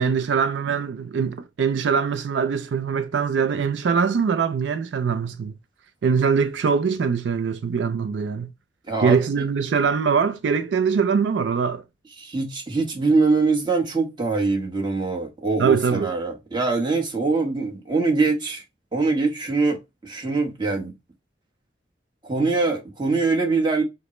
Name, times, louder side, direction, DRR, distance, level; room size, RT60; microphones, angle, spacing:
voice 1, 0.0-5.6 6.0-8.5 9.0-11.8 15.6-16.1, right 6 dB, 75° right, 0.4 m, -22 dB
voice 2, 8.9-9.2 12.2-18.6 18.9-20.9 22.2-23.8, right 3 dB, 25° right, 1.0 m, -23 dB
4.9 x 2.0 x 4.1 m
head